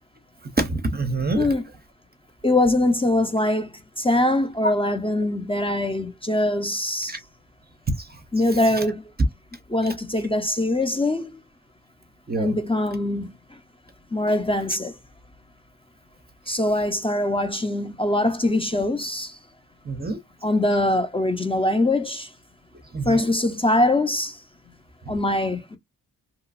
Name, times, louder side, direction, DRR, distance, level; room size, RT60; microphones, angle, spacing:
voice 1, 0.6-1.5 7.1-7.2 12.3-12.6 19.9-20.2 22.9-23.3, right 3 dB, 30° right, 0.6 m, -26 dB
voice 2, 1.3-1.7 2.4-7.2 8.3-9.0 9.7-11.4 12.4-13.6 14.1-15.0 16.5-19.4 20.4-22.3 23.1-24.4 25.1-25.8, left 1 dB, 15° left, 0.5 m, -23 dB
2.8 x 2.4 x 2.4 m
wide cardioid pair, 85°, 35 cm